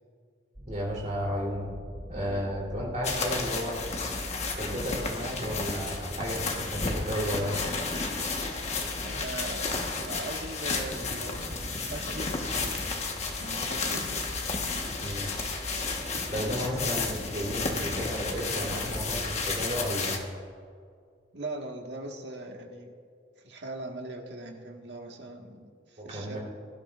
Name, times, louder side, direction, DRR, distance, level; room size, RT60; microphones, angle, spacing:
sound 1, 0.5-19.8, equal, 15° right, 2.7 m, -43 dB
voice 1, 0.7-1.7 2.1-3.8 4.6-7.6 15.0-15.3 16.1-20.2 26.0-26.4, equal, 40° right, -3 dB, 3.3 m, -33 dB
voice 2, 2.1-2.5 9.0-12.7 13.4-14.3 21.3-22.9 23.4-26.4, right 2 dB, 75° right, 1 dB, 1.6 m, -40 dB
sound 2, 3.0-20.2, left 4 dB, 35° left, 1.3 m, -32 dB
22.0 x 11.5 x 2.5 m, 2.2 s
head